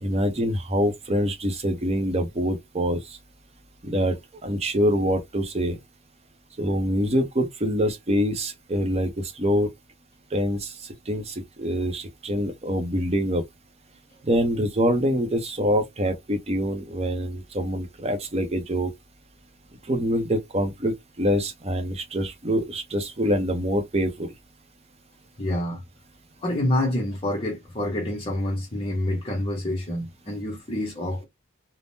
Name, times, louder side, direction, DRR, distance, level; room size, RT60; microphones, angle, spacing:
voice 1, 0.0-3.2 3.8-5.8 6.6-9.7 10.3-13.4 14.2-18.9 19.8-24.3, equal, 30° right, 0.7 m, -25 dB
voice 2, 25.4-25.8 26.4-31.2, left 1 dB, 25° left, 0.7 m, -27 dB
3.5 x 2.0 x 2.6 m
head